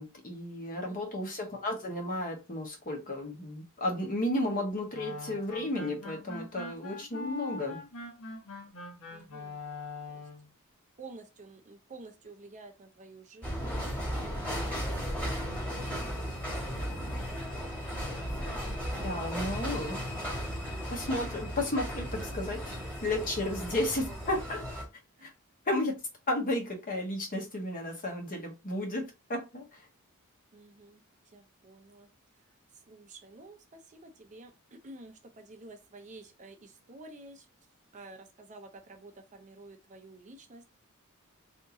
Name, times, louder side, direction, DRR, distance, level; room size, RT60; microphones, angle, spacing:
voice 1, 0.0-7.8 19.0-20.0 20.9-24.6 25.2-25.3 25.7-25.9 26.3-29.9, left 1 dB, 40° left, 0.9 m, -33 dB
voice 2, 0.8-1.1 9.1-9.6 10.1-10.2 11.0-15.6 15.9-16.9 25.2-25.3 30.5-31.0 31.3-32.1 32.7-37.5 37.9-40.7, right 2 dB, 35° right, 0.5 m, -51 dB
sound 1, 4.9-10.5, left 3 dB, 80° left, 1.1 m, -42 dB
sound 2, 13.4-24.8, equal, 5° left, 1.5 m, -35 dB
2.8 x 2.7 x 3.5 m
head